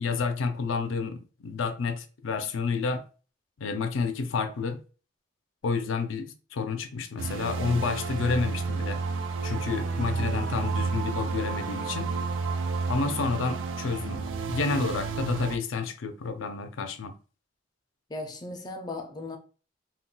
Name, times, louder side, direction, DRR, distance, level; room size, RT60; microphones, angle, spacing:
voice 1, 0.0-3.0 3.6-4.8 5.6-9.0 9.4-12.1 12.9-17.1, left 4 dB, 85° left, 0.4 m, -30 dB
sound 1, 7.2-15.6, right 4 dB, 75° right, 0.3 m, -31 dB
voice 2, 13.1-13.5 18.1-19.4, left 2 dB, 20° left, 0.4 m, -38 dB
2.2 x 2.2 x 3.7 m
head